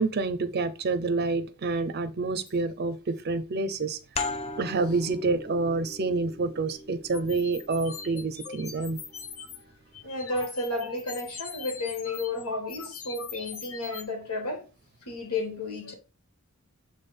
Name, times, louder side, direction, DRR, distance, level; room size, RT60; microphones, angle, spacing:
voice 1, 0.0-4.0 4.6-9.0 10.7-10.8, right 3 dB, 45° right, 0.5 m, -28 dB
sound 1, 4.2-9.4, left 3 dB, 25° left, 0.6 m, -39 dB
sound 2, 7.1-9.6 9.9-14.0, left 6 dB, 65° left, 0.9 m, -42 dB
voice 2, 10.0-14.7 15.1-15.9, left 2 dB, 85° left, 2.0 m, -32 dB
7.0 x 3.4 x 4.3 m
head